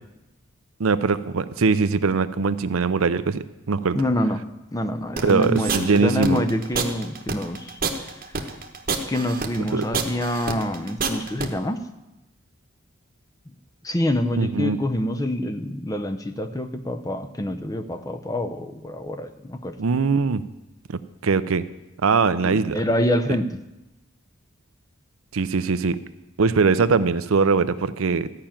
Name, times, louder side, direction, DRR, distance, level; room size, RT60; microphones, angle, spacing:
voice 1, 0.8-4.0 5.2-6.4 9.7-9.8 14.4-14.8 19.8-20.4 20.9-21.6 22.0-22.8 25.3-26.0 26.4-28.3, right 4 dB, 75° right, 12 dB, 0.6 m, -21 dB
voice 2, 3.9-4.4 4.7-7.8 9.1-11.8 13.8-19.7 22.4-23.6, left 1 dB, 15° left, 8 dB, 0.6 m, -26 dB
sound 1, 5.2-11.5, right 4 dB, 40° right, 1.1 m, -27 dB
13.5 x 5.8 x 8.8 m, 0.99 s
head